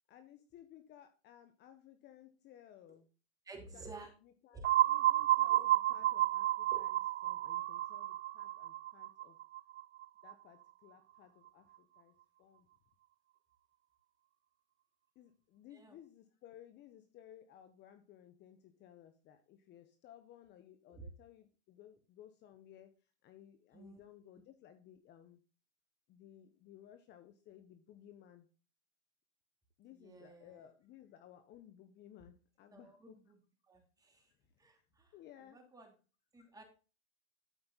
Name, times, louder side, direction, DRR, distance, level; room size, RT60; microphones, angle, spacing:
voice 1, 0.1-3.1 3.6-3.9 4.4-9.4 10.2-12.7 15.1-22.9 23.2-25.4 26.1-28.5 29.8-33.2 35.1-35.6 36.4-36.5, left 11 dB, 30° left, 8 dB, 1.1 m, -58 dB
voice 2, 3.4-4.1 4.5-4.7 5.2-5.6 6.7-6.8 15.7-16.0 20.9-21.0 23.7-24.0 29.9-30.7 32.7-33.4 33.7-34.3 34.6-35.9 36.3-36.6, right 3 dB, 10° right, 3 dB, 3.0 m, -53 dB
sound 1, 4.6-10.3, right 14 dB, 80° right, 0.5 m, -31 dB
13.0 x 5.2 x 4.0 m, 0.34 s
hypercardioid pair, 130°, 33 cm